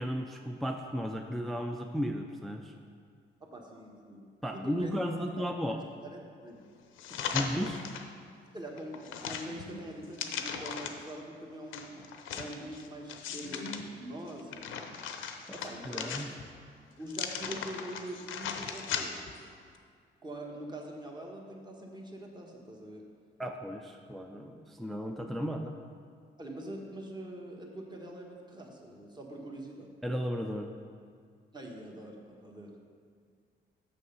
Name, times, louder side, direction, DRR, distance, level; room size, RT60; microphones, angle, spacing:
voice 1, 0.0-2.7 4.4-5.8 7.3-7.9 15.9-16.3 23.4-25.8 30.0-30.7, equal, ahead, 4 dB, 0.4 m, -34 dB
voice 2, 3.4-6.6 7.1-7.4 8.5-14.9 15.5-16.4 17.0-19.2 20.2-23.1 25.2-25.4 26.4-29.9 31.5-32.8, right 1 dB, 20° right, 0 dB, 1.4 m, -44 dB
sound 1, 7.0-8.1 8.6-11.1 11.7-13.8 14.3-16.6 17.1-19.4 19.7-19.8, left 7 dB, 85° left, 0.7 m, -38 dB
6.6 x 6.5 x 5.4 m, 2.1 s
cardioid pair, 90°, 20 cm